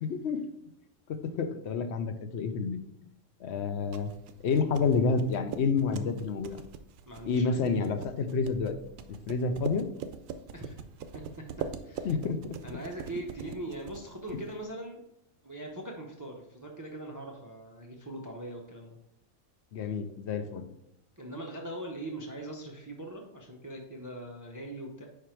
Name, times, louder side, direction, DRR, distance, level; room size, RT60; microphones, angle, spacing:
voice 1, 0.1-0.4 1.1-2.8 3.4-4.1 4.4-6.6 7.3-8.8 9.1-9.9 12.0-12.6 19.7-20.6, left 5 dB, 60° left, 8 dB, 0.8 m, -29 dB
sound 1, 3.6-14.6, right 7 dB, 70° right, 0.9 m, -43 dB
voice 2, 7.1-7.6 10.5-10.8 11.1-11.2 11.8-12.1 12.6-15.0 15.4-19.0 21.2-25.1, right 1 dB, 25° right, 1 dB, 0.4 m, -41 dB
5.1 x 4.7 x 4.4 m, 0.80 s
omnidirectional pair, 1.5 m